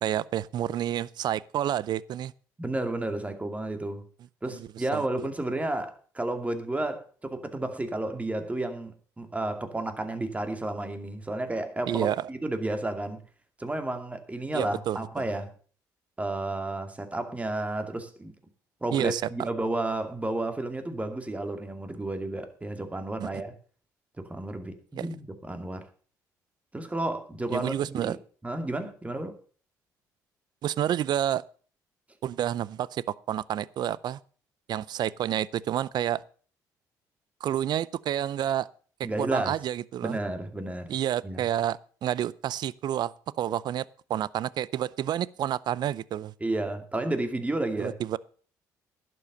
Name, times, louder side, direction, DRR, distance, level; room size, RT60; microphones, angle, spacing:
voice 1, 0.0-2.3 4.6-4.7 4.9-5.0 11.9-12.3 14.5-15.2 18.9-19.2 23.2-23.3 25.0-25.1 27.5-28.2 30.6-31.4 32.2-34.2 34.7-36.2 37.4-38.7 39.2-40.2 40.9-43.1 43.4-43.8 44.1-46.3 47.8-48.2, right 11 dB, 60° right, 0.5 m, -29 dB
voice 2, 2.6-4.0 4.4-13.2 13.6-15.5 16.2-18.3 18.8-23.5 24.3-25.9 26.7-28.2 28.4-29.4 39.0-39.6 40.0-40.9 41.2-41.4 46.4-48.0, right 2 dB, 15° right, 2.4 m, -32 dB
11.0 x 7.8 x 6.7 m
supercardioid pair, 60°, 8 cm